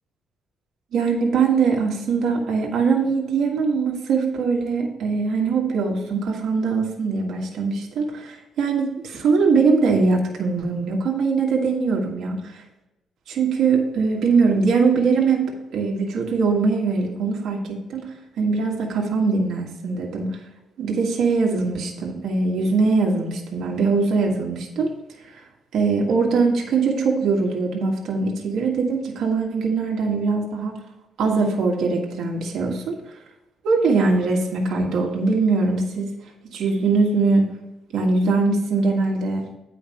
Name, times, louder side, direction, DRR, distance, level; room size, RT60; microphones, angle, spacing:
voice 1, 0.9-12.5 13.3-15.5 15.7-20.3 20.8-24.9 25.7-30.8 31.2-33.0 33.6-36.1 36.5-37.4 37.9-39.4, right 4 dB, 70° right, -1 dB, 1.6 m, -21 dB
8.8 x 5.0 x 4.5 m, 0.98 s
cardioid pair, 90°, 0 cm